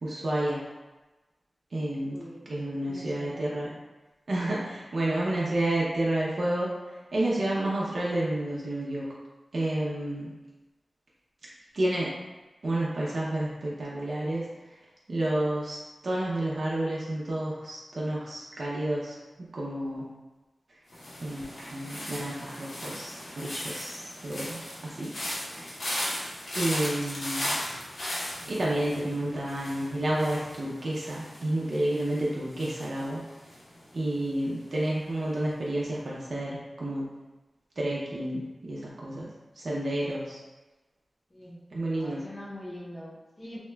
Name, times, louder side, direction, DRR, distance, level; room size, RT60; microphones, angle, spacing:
voice 1, 0.0-0.6 1.7-2.2 2.5-3.7 4.3-6.7 7.1-9.1 9.5-10.3 11.7-12.1 12.6-14.5 15.1-19.1 19.5-20.1 21.2-21.4 21.7-25.1 25.4-25.8 26.6-27.6 28.5-33.2 33.9-37.1 37.8-39.3 39.6-40.4 41.7-42.2, right 1 dB, 60° right, -6 dB, 0.5 m, -30 dB
voice 2, 2.1-2.5 2.8-3.8 41.3-41.6 41.9-43.6, left 1 dB, 25° left, -6 dB, 0.6 m, -43 dB
sound 1, 20.9-34.0 34.2-34.7, left 1 dB, 75° left, 0.8 m, -37 dB
2.8 x 2.2 x 3.2 m, 1.2 s
wide cardioid pair, 120°, 0 cm